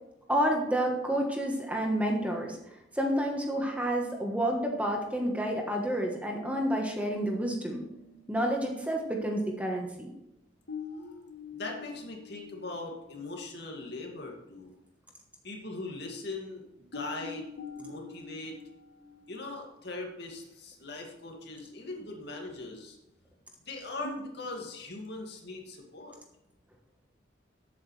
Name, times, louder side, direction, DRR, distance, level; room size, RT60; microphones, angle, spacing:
voice 1, 0.3-7.8 8.3-10.1, right 1 dB, 5° right, 1 dB, 1.3 m, -29 dB
sound 1, 6.4-8.5 10.7-12.8 13.2-13.3 16.9-20.1 24.0-24.8, left 3 dB, 75° left, 1.5 m, -45 dB
voice 2, 11.5-14.7 15.4-17.5 17.8-18.5 19.3-23.0 23.7-26.1, left 2 dB, 60° left, 0 dB, 2.3 m, -40 dB
14.0 x 8.4 x 3.3 m, 0.88 s
head